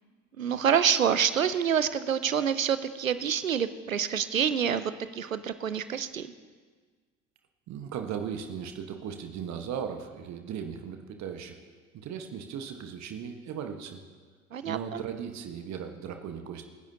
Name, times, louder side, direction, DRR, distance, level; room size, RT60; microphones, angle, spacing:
voice 1, 0.4-6.3 14.5-15.0, right 8 dB, 85° right, 14 dB, 0.6 m, -27 dB
voice 2, 7.7-11.6 11.9-14.0 14.6-16.7, right 7 dB, 45° right, 6 dB, 1.3 m, -37 dB
26.0 x 10.5 x 2.8 m, 1.5 s
figure-of-eight pair, 60°, 39 cm